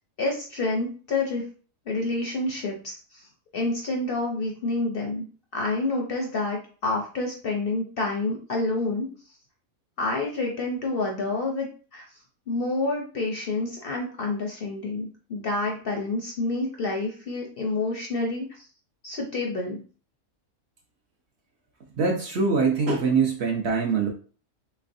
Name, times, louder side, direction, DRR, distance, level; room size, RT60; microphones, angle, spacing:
voice 1, 0.2-1.4 1.9-3.2 3.5-5.2 5.5-9.1 10.0-11.7 11.9-12.1 12.5-18.6 19.0-19.8, left 2 dB, 55° left, 0 dB, 0.7 m, -28 dB
voice 2, 22.0-24.1, right 4 dB, 60° right, 1 dB, 0.8 m, -23 dB
3.2 x 3.1 x 2.6 m, 0.39 s
omnidirectional pair, 1.5 m